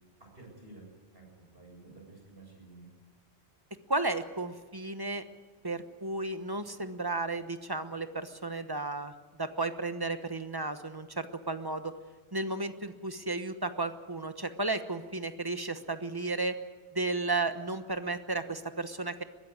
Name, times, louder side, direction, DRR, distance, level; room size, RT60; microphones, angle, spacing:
voice 1, 0.2-0.8 1.1-2.9, right 2 dB, 60° right, 0 dB, 7.8 m, -52 dB
voice 2, 3.9-5.2 5.6-9.1 9.4-11.9 12.3-16.6 16.9-19.2, right 2 dB, 20° right, 9 dB, 1.0 m, -33 dB
22.0 x 14.0 x 9.6 m, 1.3 s
omnidirectional pair, 1.1 m